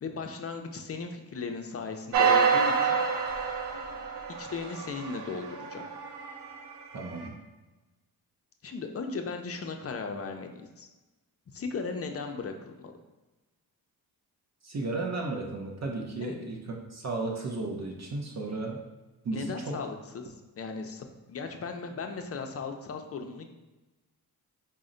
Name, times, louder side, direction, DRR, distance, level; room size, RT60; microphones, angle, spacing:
voice 1, 0.0-3.0 4.4-5.8 8.6-10.9 11.5-12.9 16.2-16.4 19.3-23.4, left 4 dB, 40° left, 5 dB, 0.5 m, -37 dB
sound 1, 2.1-6.6 7.2-7.3, right 6 dB, 85° right, 0.6 m, -27 dB
voice 2, 6.9-7.3 14.6-18.8 19.2-19.8, right 3 dB, 45° right, 0 dB, 0.6 m, -34 dB
4.0 x 2.1 x 3.8 m, 1.1 s
cardioid pair, 75°, 39 cm